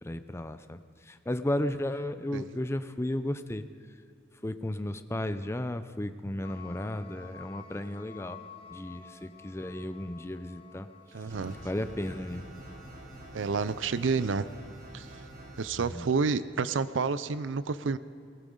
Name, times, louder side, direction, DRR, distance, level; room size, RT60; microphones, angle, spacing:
voice 1, 0.0-3.6 4.4-8.4 8.7-10.9 11.6-12.4 15.9-16.1, left 1 dB, 15° left, 10 dB, 0.5 m, -34 dB
sound 1, 6.4-14.6, left 7 dB, 30° left, 0.8 m, -52 dB
voice 2, 11.1-11.6 13.3-14.4 14.9-15.1 15.6-18.0, right 4 dB, 85° right, 15 dB, 0.5 m, -29 dB
sound 2, 11.3-15.7, right 1 dB, 50° right, 3.0 m, -47 dB
18.5 x 17.0 x 3.9 m, 2.4 s
head